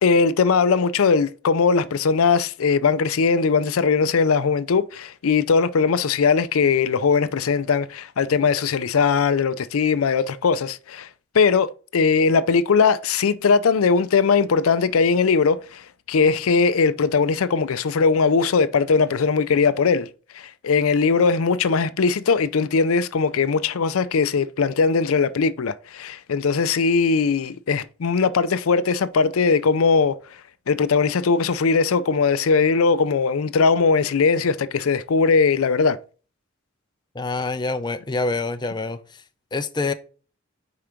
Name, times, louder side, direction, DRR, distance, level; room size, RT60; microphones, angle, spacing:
voice 1, 0.0-11.1 11.3-15.8 16.1-20.1 20.3-30.2 30.7-36.0, left 5 dB, 80° left, 0.5 m, -20 dB
voice 2, 37.1-39.0 39.5-39.9, left 3 dB, 20° left, 0.5 m, -26 dB
5.0 x 4.7 x 5.7 m
head